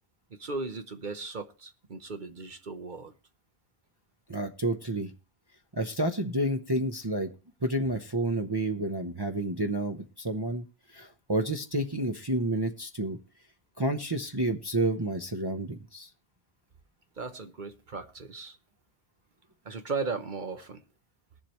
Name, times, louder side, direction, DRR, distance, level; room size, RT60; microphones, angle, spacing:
voice 1, 0.3-3.1 17.2-18.6 19.6-20.8, right 4 dB, 50° right, 1.1 m, -37 dB
voice 2, 4.3-5.1 5.7-7.3 7.6-10.6 10.9-13.2 13.8-16.1, right 1 dB, 25° right, 0.8 m, -30 dB
21.0 x 7.4 x 3.1 m
omnidirectional pair, 1.0 m